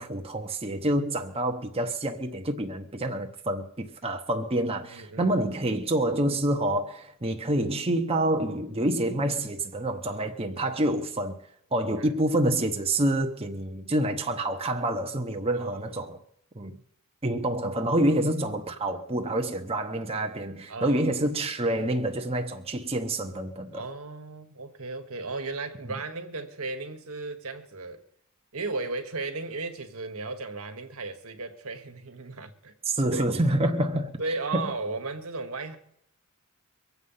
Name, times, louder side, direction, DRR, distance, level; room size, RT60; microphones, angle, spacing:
voice 1, 0.0-11.4 11.7-16.2 16.5-16.8 17.2-23.8 32.8-34.1 34.5-34.7, right 1 dB, 25° right, 0.9 m, -27 dB
voice 2, 4.9-5.3 10.6-10.7 12.0-12.1 15.6-16.0 20.7-21.0 23.7-28.0 28.5-32.7 33.1-33.2 34.2-35.8, right 3 dB, 75° right, 1.4 m, -35 dB
23.5 x 8.1 x 5.6 m
head